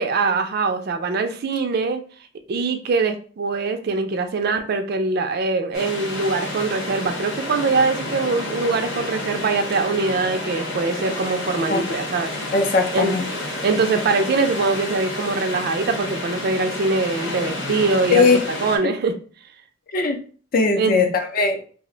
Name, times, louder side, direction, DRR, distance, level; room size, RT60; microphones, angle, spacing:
voice 1, 0.0-2.0 2.5-12.3 12.9-13.1 13.6-18.3 18.6-19.1 20.8-21.0, right 3 dB, 55° right, 7 dB, 0.4 m, -22 dB
sound 1, 5.7-18.8, left 1 dB, 75° left, 0.9 m, -30 dB
voice 2, 12.5-13.3 18.1-18.4 18.8-18.9 19.9-20.2 20.5-21.6, left 4 dB, 50° left, 5 dB, 0.5 m, -19 dB
2.4 x 2.1 x 3.7 m, 0.42 s
head